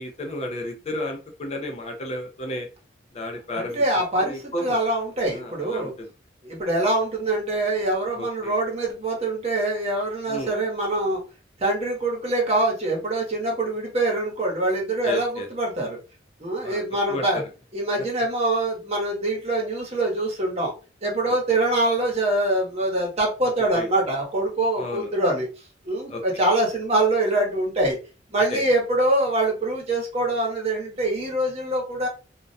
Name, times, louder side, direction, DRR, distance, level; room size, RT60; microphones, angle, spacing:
voice 1, 0.0-2.7 3.1-3.8 4.2-4.8 5.3-6.1 8.1-8.5 10.3-10.5 15.0-15.5 16.6-17.2 21.3-21.4 23.7-23.9 24.8-25.1 26.1-26.4 28.5-28.6, left 1 dB, 35° left, 2 dB, 0.4 m, -32 dB
voice 2, 3.6-5.9 6.4-11.2 11.6-16.0 16.4-17.4 17.7-20.7 21.0-25.5 25.8-28.0 28.3-32.1, right 2 dB, 35° right, -1 dB, 0.9 m, -24 dB
2.3 x 2.1 x 2.5 m, 0.33 s
head